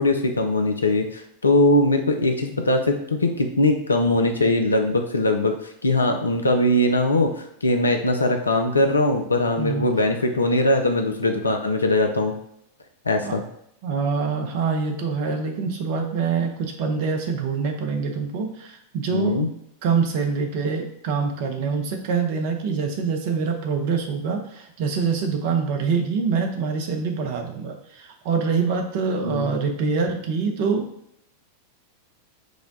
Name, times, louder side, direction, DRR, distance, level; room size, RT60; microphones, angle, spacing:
voice 1, 0.0-5.6 5.8-12.3 13.1-13.4 19.1-19.5 29.2-29.5, left 1 dB, 75° left, 5 dB, 0.5 m, -21 dB
voice 2, 9.6-9.9 13.2-13.4 13.8-19.3 19.8-30.9, right 5 dB, 50° right, 3 dB, 0.7 m, -25 dB
4.9 x 2.2 x 3.9 m, 0.75 s
figure-of-eight pair, 90°, 0 cm